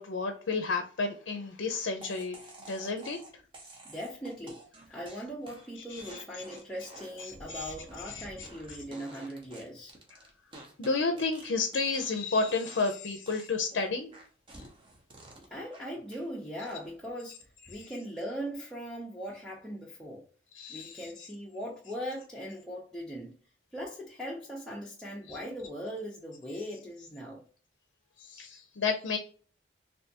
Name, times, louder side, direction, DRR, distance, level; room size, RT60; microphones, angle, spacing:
voice 1, 0.0-2.4 2.7-3.2 5.9-6.0 7.5-7.7 8.1-8.5 10.8-14.1 20.5-21.1 25.3-25.4 28.2-29.2, left 4 dB, 70° left, 0.5 m, -31 dB
sound 1, 2.0-12.2 12.5-13.0 13.3-16.3 16.6-17.1, right 1 dB, 25° right, 0.8 m, -51 dB
voice 2, 3.8-4.6 4.9-9.9 15.4-20.3 20.7-23.3 23.7-27.5, equal, 5° left, 0.6 m, -40 dB
3.3 x 2.6 x 2.7 m
head